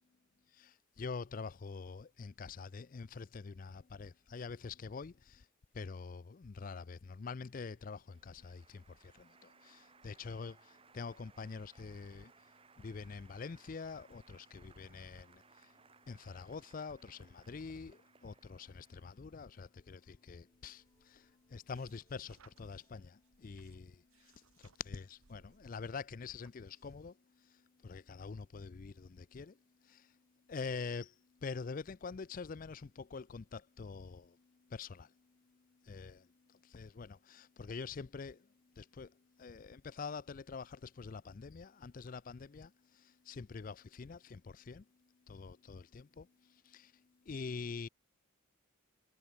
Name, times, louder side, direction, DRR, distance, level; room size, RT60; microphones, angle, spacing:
voice 1, 0.5-5.5 5.7-12.5 12.8-15.8 16.1-29.6 29.8-30.2 30.5-44.9 45.3-47.9, left 5 dB, 40° left, 0.4 m, -46 dB
Applause, 7.0-19.5, right 5 dB, 25° right, 0.8 m, -65 dB
sound 1, 10.5-25.2, left 1 dB, 20° left, 3.4 m, -80 dB
sound 2, 20.5-27.1, right 6 dB, 85° right, 1.2 m, -70 dB
head